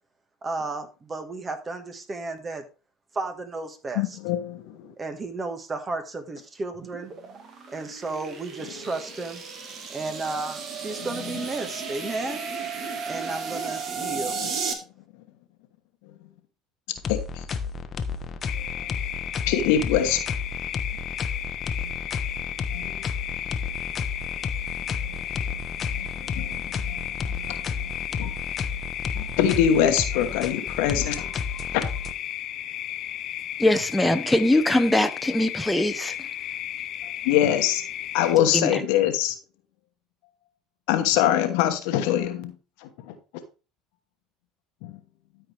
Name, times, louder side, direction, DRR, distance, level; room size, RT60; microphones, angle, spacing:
voice 1, 0.4-2.6 3.1-4.2 5.0-7.1 7.7-9.4 9.9-12.4 13.1-14.4, right 3 dB, 30° right, 1.6 m, -33 dB
voice 2, 3.9-4.9 14.1-14.5 17.1-17.4 18.8-18.9 19.5-20.2 21.8-21.9 22.7-23.0 25.0-25.3 25.9-27.9 28.2-28.3 29.1-31.3 31.7-31.8 37.2-37.8 38.1-39.3 40.9-42.5 42.8-43.1 44.8-45.0, left 10 dB, 70° left, 1.1 m, -24 dB
sound 1, 6.7-14.7, right 5 dB, 45° right, 1.7 m, -34 dB
sound 2, 17.0-32.1, left 5 dB, 40° left, 0.9 m, -32 dB
sound 3, 18.5-38.4, left 12 dB, 55° left, 0.6 m, -34 dB
voice 3, 33.6-36.1 38.5-38.7, left 1 dB, 5° left, 1.0 m, -22 dB
13.0 x 4.7 x 3.4 m
hypercardioid pair, 75°, 0 cm